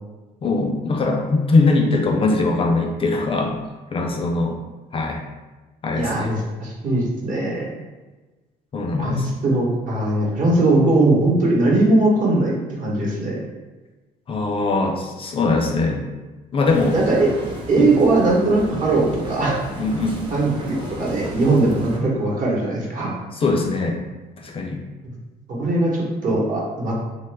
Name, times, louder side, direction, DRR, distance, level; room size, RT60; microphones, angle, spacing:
voice 1, 0.4-3.6 3.9-4.5 4.9-5.2 5.8-6.3 8.7-9.3 14.3-16.1 16.5-16.9 17.8-17.9 19.8-20.2 23.4-24.0 24.4-24.8, left 3 dB, 35° left, 1 dB, 0.4 m, -21 dB
voice 2, 5.9-7.7 9.0-13.4 16.9-17.3 17.7-19.6 20.3-23.1 25.0-25.1 25.5-27.1, right 2 dB, 50° right, -3 dB, 1.0 m, -20 dB
sound 1, 16.6-22.0, right 1 dB, 30° right, 0.7 m, -34 dB
2.9 x 2.2 x 3.2 m, 1.2 s
cardioid pair, 110°, 17 cm